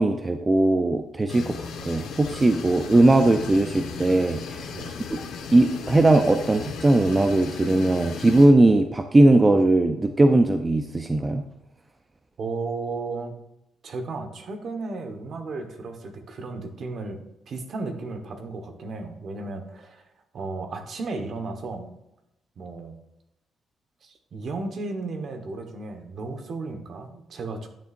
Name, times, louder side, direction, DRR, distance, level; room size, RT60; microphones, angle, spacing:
voice 1, 0.0-5.2 5.5-11.4, right 2 dB, 20° right, 6 dB, 0.6 m, -19 dB
sound 1, 1.3-8.5, left 5 dB, 85° left, 1.2 m, -36 dB
voice 2, 12.4-13.3 13.8-17.2 17.5-20.1 20.3-21.9 22.6-23.0 24.0-27.7, right 3 dB, 55° right, 5 dB, 1.3 m, -34 dB
10.5 x 6.8 x 2.6 m, 0.86 s
cardioid pair, 90°, 0 cm